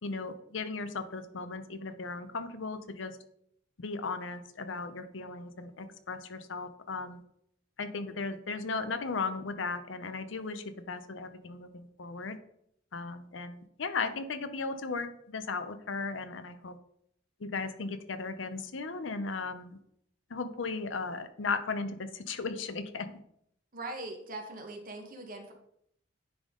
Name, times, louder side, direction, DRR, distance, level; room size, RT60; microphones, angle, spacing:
voice 1, 0.0-3.2 3.8-7.2 7.8-12.4 12.9-16.8 17.4-19.8 20.3-23.1, left 4 dB, 75° left, 10 dB, 0.7 m, -36 dB
voice 2, 23.7-25.5, right 2 dB, 50° right, 3 dB, 1.2 m, -41 dB
9.9 x 3.6 x 3.7 m, 0.71 s
head